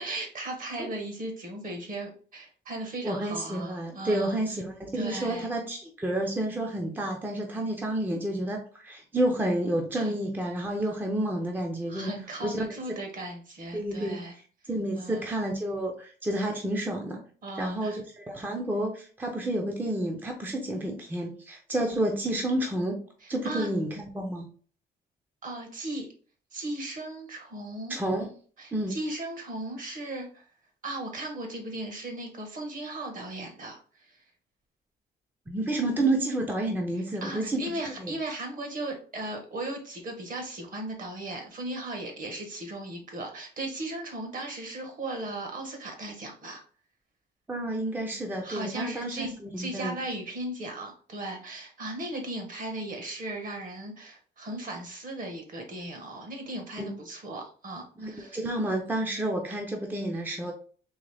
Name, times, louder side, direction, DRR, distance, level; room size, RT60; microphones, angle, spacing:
voice 1, 0.0-4.4 4.9-5.5 10.0-10.2 11.9-14.3 15.0-15.3 17.4-18.0 23.2-23.7 25.4-26.1 26.5-28.0 28.6-30.5 30.8-34.2 37.2-46.6 48.4-58.4, right 1 dB, 50° right, 3 dB, 1.3 m, -37 dB
voice 2, 3.0-12.1 12.4-13.0 13.7-14.2 14.7-17.2 17.6-23.0 23.3-24.5 27.9-28.3 28.7-29.0 35.5-37.7 38.0-38.1 47.5-50.0 56.8-56.9 58.0-60.5, right 1 dB, 10° right, 1 dB, 0.6 m, -30 dB
3.9 x 3.0 x 3.3 m, 0.42 s
cardioid pair, 140°, 18 cm